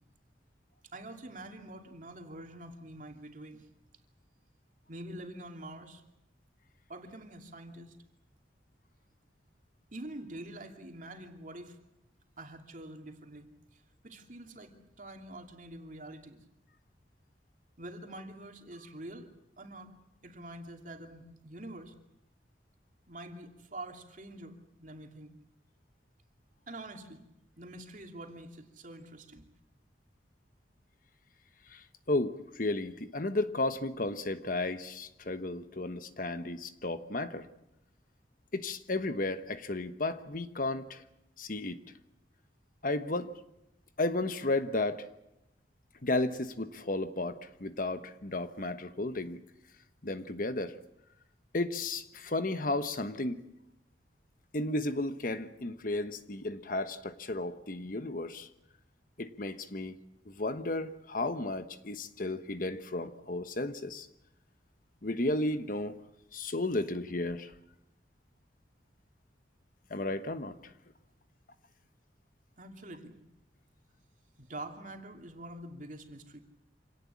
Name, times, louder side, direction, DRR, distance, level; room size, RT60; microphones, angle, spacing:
voice 1, 0.9-3.7 4.9-6.0 6.9-8.0 9.9-11.8 12.4-16.4 17.8-19.3 19.6-19.9 20.2-21.9 23.1-25.4 26.7-27.2 27.6-29.4 72.6-73.2 74.4-76.4, right 1 dB, 45° right, 4 dB, 2.8 m, -46 dB
voice 2, 31.7-37.5 38.5-41.0 41.4-41.8 42.8-43.4 44.0-45.0 46.0-49.4 50.0-50.8 51.5-53.4 54.5-58.5 59.2-60.0 60.3-64.1 65.0-66.0 66.3-67.5 69.9-70.7, left 2 dB, 50° left, 10 dB, 1.2 m, -33 dB
26.5 x 18.0 x 8.4 m, 0.84 s
head